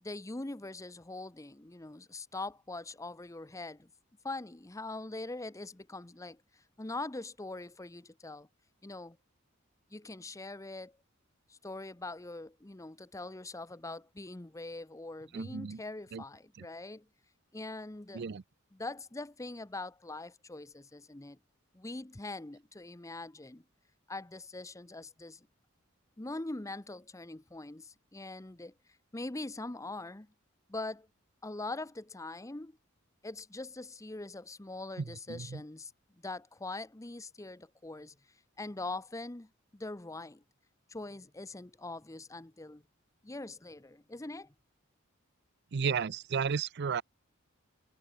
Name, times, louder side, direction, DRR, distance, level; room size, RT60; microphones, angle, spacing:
voice 1, 0.0-3.9 4.2-8.5 8.8-9.2 9.9-11.0 11.5-17.1 17.5-18.2 18.7-21.4 21.7-23.6 24.1-25.5 26.2-28.7 29.1-30.3 30.7-31.1 31.4-32.8 33.2-35.9 36.2-38.2 38.6-40.4 40.9-42.8 43.2-44.5, left 2 dB, 15° left, 0.7 m, -42 dB
voice 2, 15.3-15.8 16.1-16.2 16.6-16.7 18.1-18.4 35.3-35.6 45.7-47.0, right 6 dB, 55° right, 0.5 m, -33 dB
head